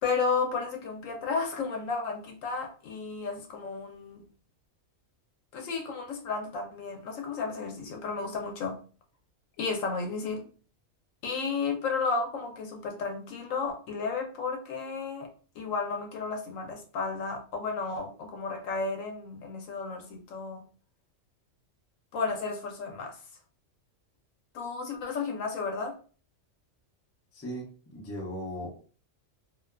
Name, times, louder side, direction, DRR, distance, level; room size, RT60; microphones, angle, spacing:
voice 1, 0.0-4.2 5.5-8.8 9.6-10.5 11.2-20.6 22.1-23.2 24.5-25.9, left 4 dB, 85° left, 3 dB, 1.0 m, -33 dB
voice 2, 27.3-28.8, equal, 20° left, -2 dB, 0.4 m, -38 dB
2.6 x 2.2 x 2.2 m, 0.40 s
omnidirectional pair, 1.3 m